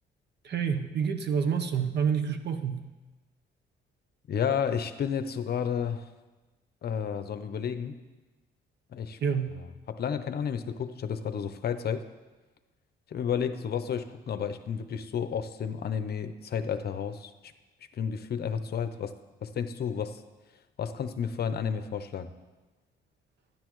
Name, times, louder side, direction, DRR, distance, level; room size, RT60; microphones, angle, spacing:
voice 1, 0.4-2.8 9.2-9.5, right 7 dB, 60° right, 7 dB, 1.0 m, -28 dB
voice 2, 4.3-6.1 6.8-8.0 8.9-9.2 9.9-12.0 13.1-17.5 18.0-19.1 19.4-20.2 20.8-22.3, left 7 dB, 55° left, 10 dB, 0.7 m, -31 dB
12.0 x 10.5 x 3.1 m, 1.2 s
cardioid pair, 90°, 20 cm